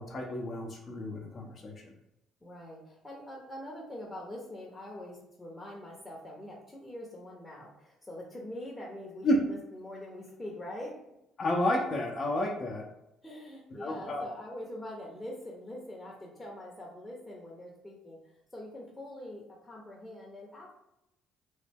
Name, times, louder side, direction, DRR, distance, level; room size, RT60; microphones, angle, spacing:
voice 1, 0.0-1.9 9.2-9.4 11.4-12.8 13.8-14.2, left 1 dB, 45° left, 0 dB, 0.7 m, -31 dB
voice 2, 2.4-11.0 13.2-20.7, left 1 dB, 15° left, -4 dB, 0.8 m, -44 dB
3.1 x 2.2 x 3.5 m, 0.86 s
hypercardioid pair, 60°, 0 cm